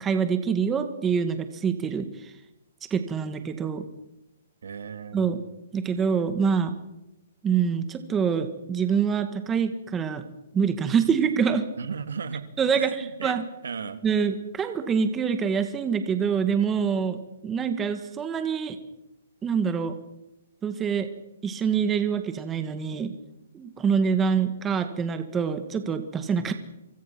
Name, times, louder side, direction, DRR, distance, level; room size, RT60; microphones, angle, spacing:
voice 1, 0.0-2.3 2.9-3.8 5.1-5.4 5.7-6.7 7.4-10.2 10.5-11.7 12.6-13.4 14.0-18.8 19.4-19.9 20.6-21.1 21.4-23.1 23.5-26.5, right 6 dB, 10° right, 8 dB, 1.6 m, -25 dB
voice 2, 4.6-5.3 11.8-12.5 12.8-14.0, right 6 dB, 85° right, 10 dB, 2.8 m, -35 dB
26.0 x 24.5 x 6.0 m, 0.90 s
hypercardioid pair, 170°, 0 cm